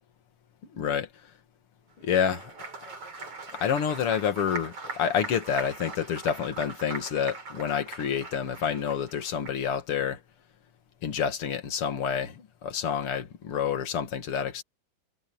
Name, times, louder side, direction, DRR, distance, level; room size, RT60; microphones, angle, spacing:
voice 1, 0.7-1.1 2.0-2.5 3.5-10.2 11.0-14.6, left 8 dB, 50° left, 2.7 m, -28 dB
Applause, 2.0-9.8, right 3 dB, 50° right, 5.9 m, -41 dB
omnidirectional pair, 3.5 m